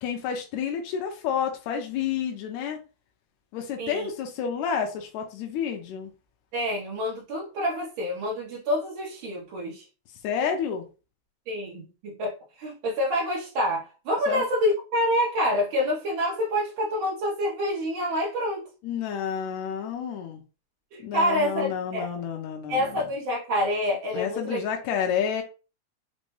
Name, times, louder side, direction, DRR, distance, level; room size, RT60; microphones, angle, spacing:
voice 1, 0.0-2.8 3.5-6.1 10.2-10.9 14.3-14.4 18.8-20.4 21.0-23.0 24.1-25.4, left 7 dB, 80° left, 3 dB, 1.8 m, -30 dB
voice 2, 6.5-9.8 11.5-12.3 12.6-18.6 20.9-22.1 22.7-24.6, left 1 dB, 70° right, -3 dB, 1.2 m, -27 dB
5.1 x 2.2 x 3.1 m, 0.32 s
omnidirectional pair, 3.3 m